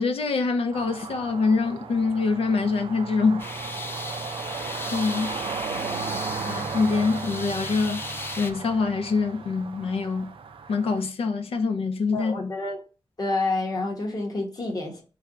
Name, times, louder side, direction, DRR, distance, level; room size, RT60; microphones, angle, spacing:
voice 1, 0.0-3.4 4.9-5.3 6.4-8.0 8.4-10.3 10.7-12.5, left 4 dB, 80° left, 0.5 m, -25 dB
sound 1, 0.7-11.0, right 5 dB, 65° right, 0.4 m, -35 dB
sound 2, 3.4-8.5, left 2 dB, 25° left, 0.3 m, -36 dB
voice 2, 5.9-6.2 12.1-12.8 13.2-15.0, left 2 dB, 40° left, 1.1 m, -29 dB
3.3 x 2.3 x 3.6 m
wide cardioid pair, 150°, 10 cm